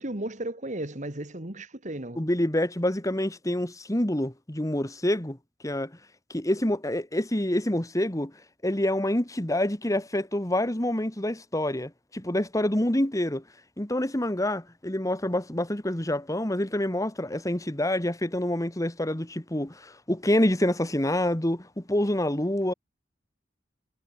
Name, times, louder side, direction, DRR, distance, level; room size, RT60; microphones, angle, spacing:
voice 1, 0.0-2.3, right 1 dB, 45° right, 2.4 m, -35 dB
voice 2, 2.2-5.4 5.6-5.9 6.3-8.3 8.6-13.4 13.8-22.7, left 1 dB, 20° left, 1.8 m, -27 dB
head